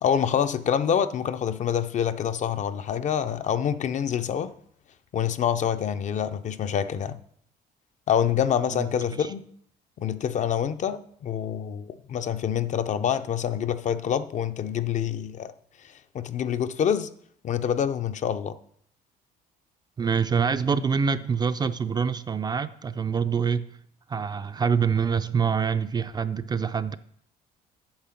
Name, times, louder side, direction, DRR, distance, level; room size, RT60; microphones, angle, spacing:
voice 1, 0.0-4.5 5.1-7.2 8.1-9.4 10.0-15.5 16.1-17.1 17.4-18.5, left 8 dB, 45° left, 0.5 m, -26 dB
voice 2, 8.7-9.3 20.0-23.7 24.1-27.0, right 6 dB, 25° right, 0.4 m, -26 dB
8.8 x 5.7 x 5.7 m
cardioid pair, 110°, 17 cm